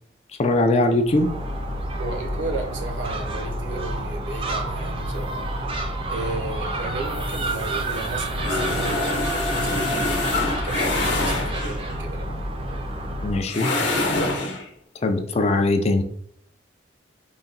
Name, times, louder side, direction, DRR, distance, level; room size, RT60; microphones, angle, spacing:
voice 1, 0.4-1.3 13.2-13.7 15.0-16.0, left 2 dB, 35° left, 0.3 m, -20 dB
Gull seagull, 1.0-13.5, right 1 dB, 30° right, 0.4 m, -29 dB
voice 2, 2.0-5.4 6.1-12.3, right 3 dB, 70° right, 0.7 m, -34 dB
sound 1, 7.1-11.9 13.4-14.6, left 2 dB, 65° left, 0.8 m, -26 dB
3.9 x 2.2 x 3.7 m
head